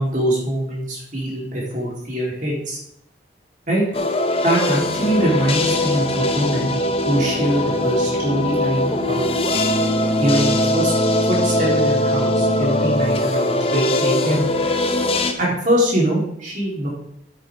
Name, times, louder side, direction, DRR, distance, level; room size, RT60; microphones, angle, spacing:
voice 1, 0.0-2.8 3.7-3.8 4.4-6.7 7.0-9.3 10.2-10.9 11.3-14.5 15.4-16.9, right 1 dB, 45° right, -4 dB, 3.7 m, -22 dB
sound 1, 3.9-15.3, left 1 dB, 30° left, 0.8 m, -20 dB
9.0 x 8.9 x 3.7 m, 0.70 s
head